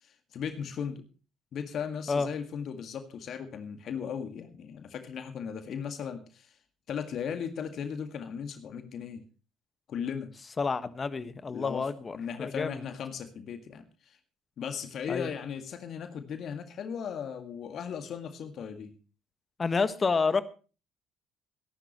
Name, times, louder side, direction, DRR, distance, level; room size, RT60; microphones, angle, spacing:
voice 1, 0.0-1.0 1.5-6.5 6.9-9.2 9.9-10.3 11.5-11.9 12.1-14.2 14.6-18.9, left 7 dB, 55° left, 8 dB, 1.9 m, -37 dB
voice 2, 10.6-12.8 15.1-15.3 19.6-20.4, left 4 dB, 35° left, 13 dB, 1.5 m, -29 dB
22.0 x 11.5 x 3.1 m, 0.35 s
hypercardioid pair, 55°, 0 cm